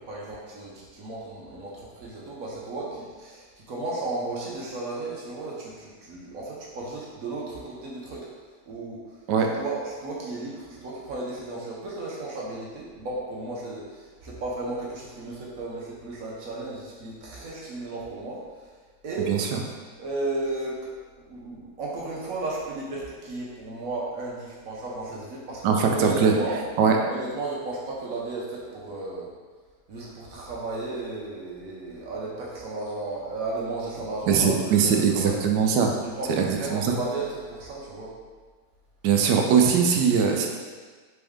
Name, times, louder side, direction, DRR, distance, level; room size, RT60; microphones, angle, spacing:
voice 1, 0.0-8.3 8.7-9.2 9.5-18.7 19.0-19.4 20.0-26.6 27.0-29.3 29.9-35.4 36.2-38.1, right 2 dB, 60° right, -4 dB, 1.1 m, -34 dB
voice 2, 19.3-19.6 25.6-26.3 26.8-27.0 34.3-35.9 36.4-36.9 39.0-40.6, right 6 dB, 80° right, 2 dB, 1.2 m, -21 dB
4.3 x 3.4 x 3.5 m, 1.5 s
omnidirectional pair, 1.8 m